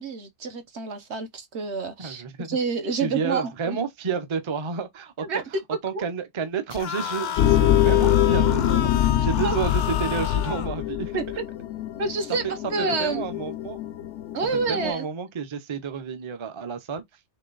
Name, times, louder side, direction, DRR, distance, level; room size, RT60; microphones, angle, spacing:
voice 1, 0.0-3.8 5.2-5.6 5.9-6.1 9.4-9.6 11.1-11.4 12.0-13.2 14.3-15.0, right 4 dB, 70° right, 1.3 m, -28 dB
voice 2, 2.0-2.5 2.9-5.3 5.8-11.1 12.4-13.8 14.7-17.0, right 6 dB, 35° right, 0.5 m, -31 dB
sound 1, 6.7-10.7, left 9 dB, 55° left, 0.5 m, -31 dB
sound 2, 7.4-14.9, left 11 dB, 85° left, 0.9 m, -24 dB
3.9 x 3.2 x 3.9 m
omnidirectional pair, 1.2 m